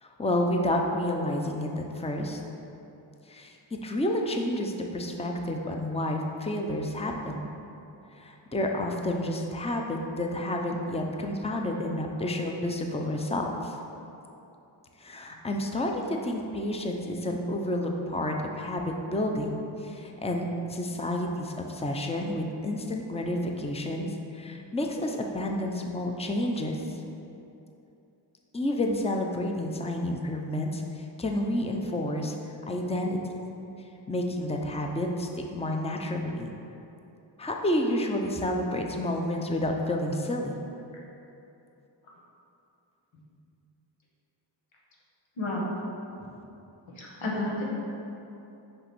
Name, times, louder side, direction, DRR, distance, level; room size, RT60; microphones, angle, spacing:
voice 1, 0.0-2.4 3.3-3.6 3.8-7.5 8.1-13.8 15.0-26.8 28.5-32.4 32.7-33.3 34.1-36.5 37.4-40.6, left 1 dB, 15° left, 2 dB, 0.7 m, -30 dB
voice 2, 45.4-45.7 46.2-46.3 46.9-47.6, left 1 dB, 85° left, -4 dB, 1.7 m, -31 dB
6.6 x 5.2 x 6.1 m, 2.8 s
wide cardioid pair, 105°, 46 cm